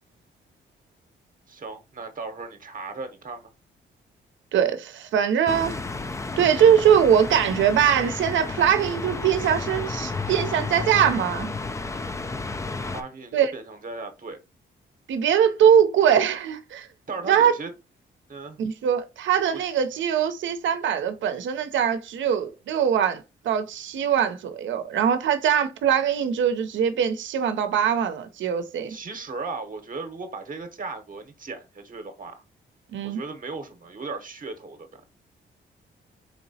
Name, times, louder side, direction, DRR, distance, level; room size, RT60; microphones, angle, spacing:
voice 1, 1.5-3.5 12.9-14.4 17.1-17.7 18.3-18.6 28.9-32.4 33.0-35.0, right 3 dB, 45° right, 0.9 m, -36 dB
voice 2, 4.5-5.8 6.4-11.5 13.3-13.5 15.1-16.9 17.2-17.5 18.6-29.0 32.9-33.2, right 8 dB, 75° right, 0.6 m, -22 dB
sound 1, 5.5-13.0, left 3 dB, 15° left, 0.3 m, -32 dB
4.4 x 2.9 x 2.7 m
supercardioid pair, 65°, 20 cm